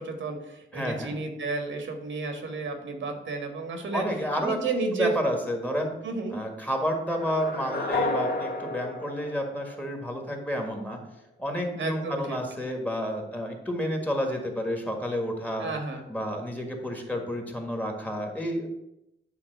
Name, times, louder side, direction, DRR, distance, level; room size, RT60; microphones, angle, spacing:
voice 1, 0.0-4.1 4.4-5.1 6.0-6.4 11.8-12.4 15.6-16.1, right 3 dB, 80° right, 4 dB, 1.6 m, -32 dB
voice 2, 0.7-1.1 3.9-4.6 4.9-6.0 6.3-11.0 11.4-15.7 16.1-18.7, equal, 10° left, 2 dB, 1.6 m, -30 dB
sound 1, 7.1-10.2, left 2 dB, 55° left, 2.0 m, -31 dB
9.8 x 3.6 x 6.6 m, 0.87 s
wide cardioid pair, 120°, 20 cm